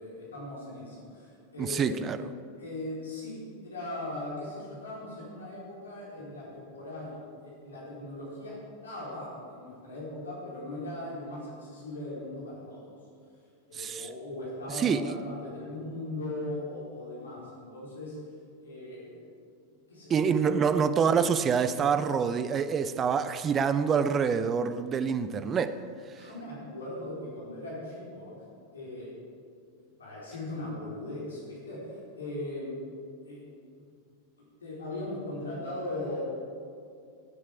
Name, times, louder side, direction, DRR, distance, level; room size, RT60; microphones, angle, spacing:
voice 1, 0.0-2.1 2.6-8.6 8.8-13.0 13.7-18.2 18.6-19.3 19.9-20.5 26.1-28.3 28.7-29.1 30.0-32.7 33.2-33.4 34.6-36.2, left 1 dB, 70° left, -6 dB, 4.2 m, -39 dB
voice 2, 1.6-2.2 13.7-14.1 14.7-15.0 20.1-25.8 26.2-26.3, right 6 dB, 25° right, 13 dB, 0.6 m, -26 dB
19.5 x 9.7 x 4.9 m, 2.3 s
figure-of-eight pair, 90°, 0 cm